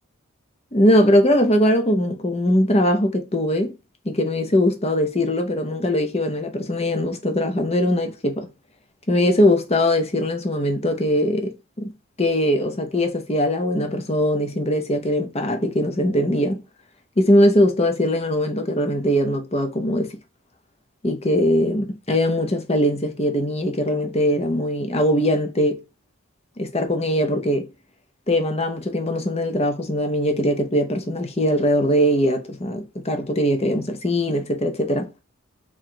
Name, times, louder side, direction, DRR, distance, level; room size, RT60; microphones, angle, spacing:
voice 1, 0.7-3.7 4.0-8.5 9.1-11.9 12.2-16.6 17.2-20.1 21.0-25.8 26.6-27.7 28.3-35.1, equal, 30° left, 0.6 m, -21 dB
3.8 x 2.4 x 4.4 m
head